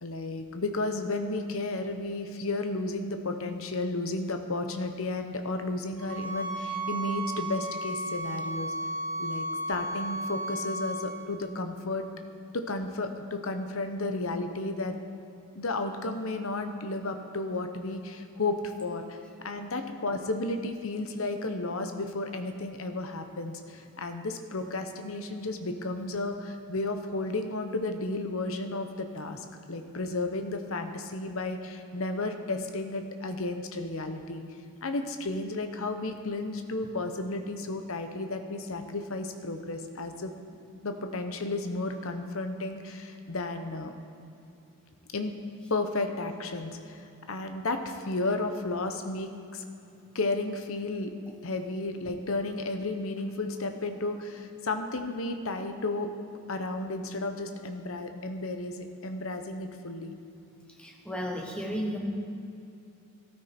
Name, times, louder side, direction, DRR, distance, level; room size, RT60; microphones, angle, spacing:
voice 1, 0.0-8.7 9.2-12.1 12.5-15.0 15.5-19.2 19.4-34.4 34.8-40.3 40.8-43.9 45.1-45.3 45.7-49.6 50.1-51.1 51.4-56.1 56.5-60.1, left 2 dB, 65° left, 6 dB, 0.9 m, -33 dB
sound 1, 6.0-11.0, right 1 dB, 60° right, 3.2 m, -34 dB
voice 2, 60.8-62.0, equal, 5° left, 0 dB, 1.2 m, -33 dB
13.5 x 12.0 x 4.4 m, 2.7 s
head